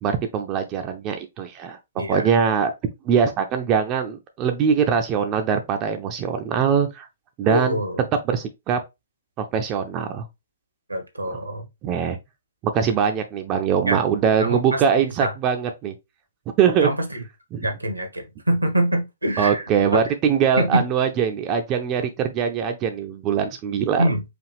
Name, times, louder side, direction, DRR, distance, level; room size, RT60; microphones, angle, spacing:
voice 1, 0.0-1.8 2.1-2.7 3.0-7.1 7.4-7.8 8.3-8.8 9.4-10.3 11.8-12.2 12.7-15.9 16.6-16.9 17.5-17.7 19.4-24.0, right 7 dB, 25° right, 0.5 m, -22 dB
voice 2, 2.0-2.3 7.5-8.0 10.9-11.7 13.8-14.0 14.4-14.8 15.2-15.3 16.8-17.2 17.6-19.6 19.9-20.0 20.6-20.8 24.0-24.2, right 1 dB, 80° right, 1.2 m, -24 dB
4.9 x 2.4 x 3.2 m
figure-of-eight pair, 120°, 0 cm